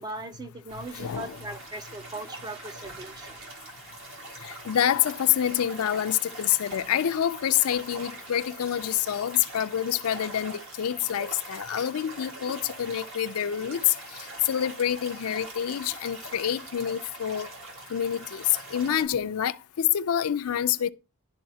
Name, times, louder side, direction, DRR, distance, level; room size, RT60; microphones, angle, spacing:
voice 1, 0.0-3.4, right 2 dB, 20° right, 0.4 m, -39 dB
sound 1, 0.7-19.1, right 2 dB, 60° right, 1.9 m, -43 dB
voice 2, 0.9-1.4 4.4-17.5 17.9-20.9, left 10 dB, 75° left, 0.4 m, -27 dB
11.5 x 3.9 x 2.7 m
head